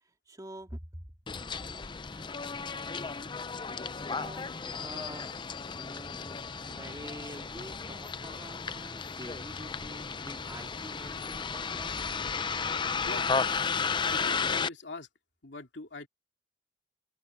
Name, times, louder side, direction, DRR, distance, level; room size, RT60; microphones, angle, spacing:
voice 1, 0.3-1.0 2.1-2.4 3.9-5.4 5.7-12.1, right 1 dB, 20° right, 2.5 m, -47 dB
Bus, 1.3-14.7, left 5 dB, 25° left, 0.5 m, -34 dB
voice 2, 13.0-13.4 14.1-15.1 15.4-16.1, left 3 dB, 70° left, 2.9 m, -42 dB
open air
head